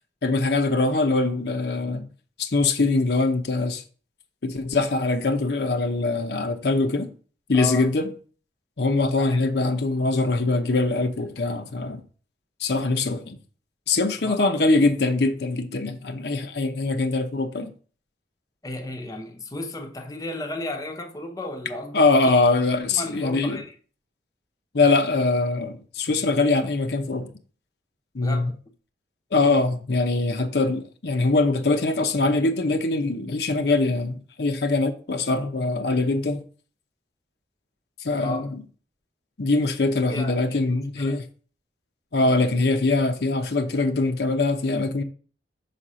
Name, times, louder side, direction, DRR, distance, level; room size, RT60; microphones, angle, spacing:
voice 1, 0.2-2.0 2.4-3.8 4.4-7.1 7.5-8.1 8.8-12.0 12.6-13.4 13.9-17.7 21.9-23.6 24.7-27.3 28.1-28.5 29.3-36.4 38.0-38.6 39.4-41.2 42.1-45.0, left 3 dB, 65° left, 0.7 m, -23 dB
voice 2, 7.5-7.9 9.2-9.4 14.2-14.5 18.6-22.0 22.9-23.7 28.2-28.6 38.2-38.5 40.1-40.6 41.0-41.2, left 1 dB, 20° left, 0.8 m, -34 dB
5.7 x 4.3 x 6.2 m
head